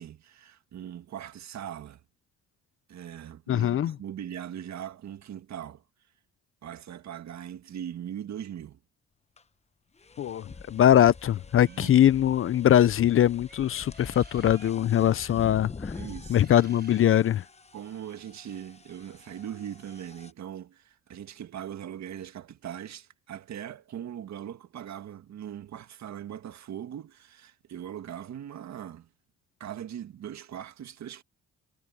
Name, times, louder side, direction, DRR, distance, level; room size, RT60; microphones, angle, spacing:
voice 1, 0.0-2.0 2.9-5.8 6.6-8.8 11.7-12.0 14.8-15.5 15.9-16.5 17.7-29.1 29.6-31.2, right 10 dB, 65° right, 1.8 m, -40 dB
voice 2, 3.5-3.9 10.2-15.7 16.3-17.4, left 11 dB, 45° left, 0.5 m, -22 dB
sound 1, 9.4-9.5 10.0-20.3, left 4 dB, 20° left, 1.1 m, -45 dB
sound 2, 11.5-12.0 13.5-14.8 16.4-17.3, right 4 dB, 30° right, 6.1 m, -54 dB
cardioid pair, 90°, 30 cm